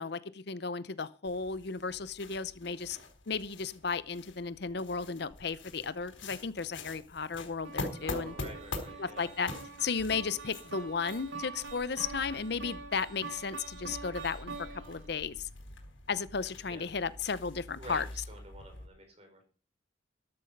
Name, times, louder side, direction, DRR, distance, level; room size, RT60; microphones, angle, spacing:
voice 1, 0.0-3.0 3.3-8.3 9.0-9.5 9.8-15.5 16.1-18.1, left 5 dB, 55° left, 16 dB, 0.7 m, -34 dB
sound 1, 1.2-18.9, left 2 dB, 80° left, 4.2 m, -45 dB
sound 2, 7.6-15.1, right 4 dB, 80° right, 2.2 m, -45 dB
voice 2, 8.0-9.3 16.6-16.8 17.8-19.4, right 1 dB, 35° right, 4 dB, 5.0 m, -49 dB
13.5 x 11.5 x 5.3 m, 0.39 s
head